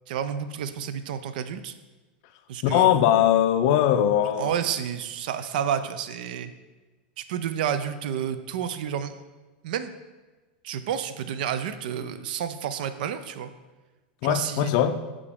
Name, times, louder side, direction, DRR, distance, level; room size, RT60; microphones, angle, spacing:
voice 1, 0.1-1.7 2.5-3.0 4.4-6.5 7.3-9.1 9.6-9.9 10.6-13.5 14.2-14.7, right 8 dB, 65° right, 11 dB, 0.4 m, -30 dB
voice 2, 2.6-4.5 14.2-15.0, left 11 dB, 45° left, 9 dB, 0.4 m, -20 dB
6.7 x 4.8 x 3.6 m, 1.2 s
supercardioid pair, 155°, 5 cm